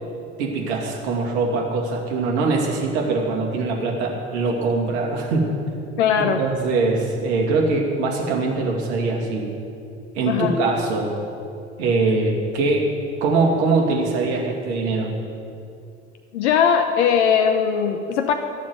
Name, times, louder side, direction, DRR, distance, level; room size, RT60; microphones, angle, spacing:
voice 1, 0.4-5.5 6.4-9.5 10.1-11.1 11.8-12.9 13.2-15.1, right 3 dB, 70° right, 0 dB, 2.7 m, -22 dB
voice 2, 6.0-6.4 10.3-10.5 16.3-18.3, left 7 dB, 75° left, 6 dB, 0.9 m, -19 dB
15.0 x 7.4 x 9.8 m, 2.5 s
hypercardioid pair, 70°, 34 cm